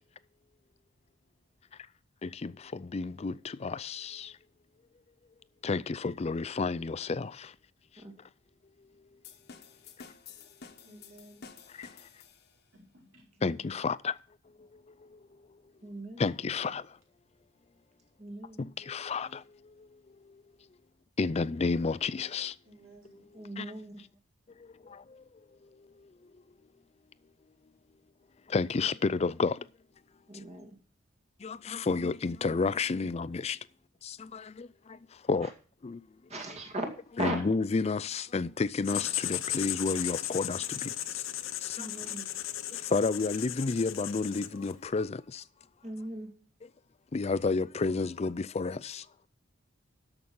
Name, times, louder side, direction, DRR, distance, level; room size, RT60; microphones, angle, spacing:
voice 1, 2.2-4.4 5.6-7.5 11.8-11.9 13.4-14.2 14.6-15.2 16.2-17.0 18.6-20.0 21.2-22.6 23.6-23.7 24.6-25.2 26.0-26.1 28.5-29.7 31.4-33.6 34.0-35.5 35.8-36.0 37.2-41.2 41.6-41.9 42.7-45.4 47.1-49.1, left 4 dB, 30° left, 0.4 m, -31 dB
sound 1, 9.2-12.7, left 5 dB, 55° left, 1.3 m, -51 dB
voice 2, 10.4-11.6 12.7-13.4 22.6-23.3 23.6-23.8, right 1 dB, 80° right, 4.8 m, -57 dB
voice 3, 15.8-16.2 18.2-18.6 23.4-24.0 30.3-30.8 35.4-35.5 36.3-36.9 37.2-37.4 41.8-42.3 45.8-46.3, right 1 dB, 35° right, 2.2 m, -38 dB
Writing, 38.8-44.8, left 13 dB, 80° left, 0.7 m, -36 dB
13.0 x 6.1 x 5.4 m
head